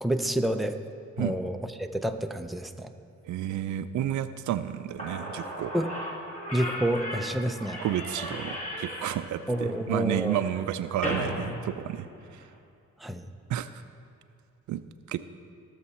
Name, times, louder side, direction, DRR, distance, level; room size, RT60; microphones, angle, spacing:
voice 1, 0.0-0.8 1.2-2.9 5.7-5.9 6.5-7.8 9.5-10.4 13.0-13.3, right 1 dB, ahead, 6 dB, 0.6 m, -29 dB
voice 2, 3.2-5.7 7.8-12.5 13.5-13.8 14.7-14.8 15.1-15.3, right 11 dB, 75° right, 12 dB, 0.5 m, -31 dB
Slam / Squeak, 4.7-4.8 5.0-12.5, equal, 25° left, 2.6 m, -36 dB
18.5 x 6.9 x 4.3 m, 2.5 s
cardioid pair, 90°, 30 cm